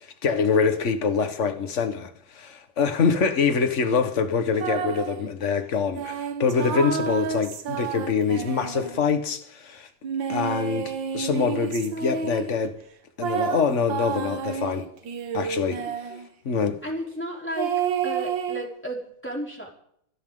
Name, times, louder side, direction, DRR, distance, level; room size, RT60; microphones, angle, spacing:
voice 1, 0.2-9.9 10.3-12.7 13.2-14.9 15.3-15.8 16.4-16.8, left 5 dB, 40° left, 1.6 m, -25 dB
sound 1, 4.6-5.2 5.9-9.2 10.0-12.6 13.2-16.3 17.6-18.7, right 7 dB, 65° right, 1.9 m, -30 dB
voice 2, 15.8-16.2 16.8-17.7 18.0-19.7, equal, 5° left, 4.1 m, -34 dB
27.5 x 12.5 x 3.9 m
omnidirectional pair, 2.3 m